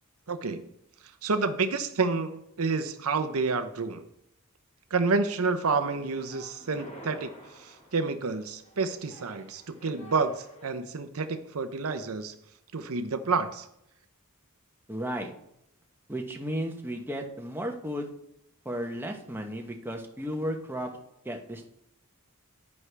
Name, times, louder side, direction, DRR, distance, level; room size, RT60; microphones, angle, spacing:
voice 1, 0.3-0.6 1.2-4.0 4.9-7.3 7.6-12.3 12.7-13.7, right 4 dB, 70° right, 9 dB, 0.7 m, -29 dB
sound 1, 5.7-10.7, equal, 30° left, 1.3 m, -50 dB
voice 2, 14.9-15.3 16.1-18.1 18.6-20.9 21.2-21.7, equal, 10° right, 2 dB, 1.0 m, -34 dB
9.6 x 9.6 x 3.4 m, 0.79 s
head